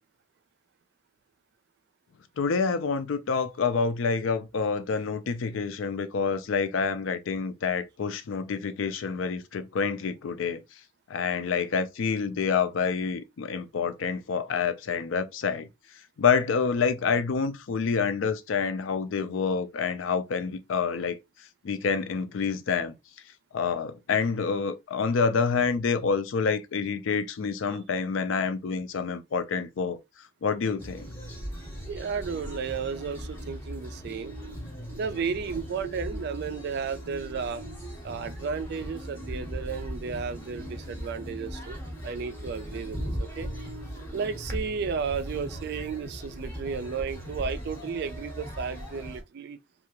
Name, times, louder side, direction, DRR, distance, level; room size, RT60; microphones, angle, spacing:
voice 1, 2.4-10.6 11.1-15.7 16.2-21.2 21.6-22.9 23.5-30.0 30.4-31.1, left 5 dB, 65° left, 0.4 m, -27 dB
sound 1, 30.8-49.2, equal, 10° left, 0.7 m, -38 dB
voice 2, 31.9-34.4 34.9-37.6 38.0-41.8 42.0-43.5 44.1-49.6, right 5 dB, 50° right, 0.3 m, -33 dB
2.7 x 2.3 x 2.8 m
head